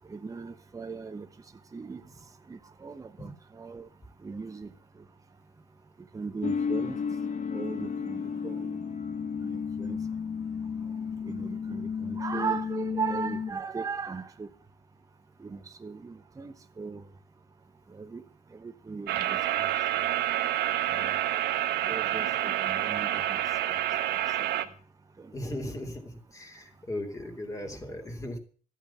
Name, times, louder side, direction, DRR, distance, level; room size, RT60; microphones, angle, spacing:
voice 1, 0.1-1.3 1.7-2.0 2.5-3.3 3.6-3.8 4.2-4.7 6.1-7.0 7.5-8.2 8.4-8.8 9.4-10.0 11.3-14.5 15.4-17.0 18.0-18.2 18.6-19.7 21.0-21.1 21.8-23.4 24.1-24.2 25.2-25.3, right 5 dB, 20° right, 1.1 m, -37 dB
sound 1, 6.4-13.5, left 6 dB, 45° left, 1.7 m, -33 dB
sound 2, 19.1-24.6, right 12 dB, 80° right, 1.3 m, -28 dB
voice 2, 25.3-28.4, left 1 dB, 20° left, 3.1 m, -37 dB
13.0 x 8.9 x 7.1 m
cardioid pair, 110°, 17 cm